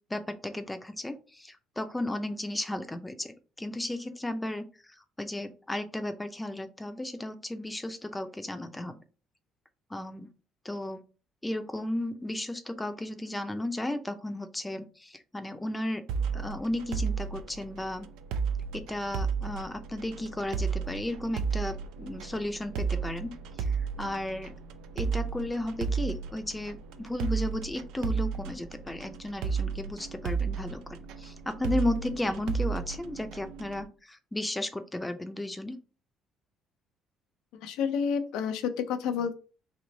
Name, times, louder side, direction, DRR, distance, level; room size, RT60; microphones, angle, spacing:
voice 1, 0.1-9.0 9.9-10.3 10.6-11.0 11.4-16.0 16.3-18.1 18.7-24.5 24.9-35.8, left 1 dB, 10° left, 8 dB, 0.5 m, -34 dB
sound 1, 16.1-33.8, right 6 dB, 85° right, 0.4 m, -33 dB
voice 2, 37.6-39.3, left 6 dB, 85° left, 8 dB, 0.6 m, -29 dB
3.1 x 2.9 x 4.0 m, 0.35 s
cardioid pair, 120°, 0 cm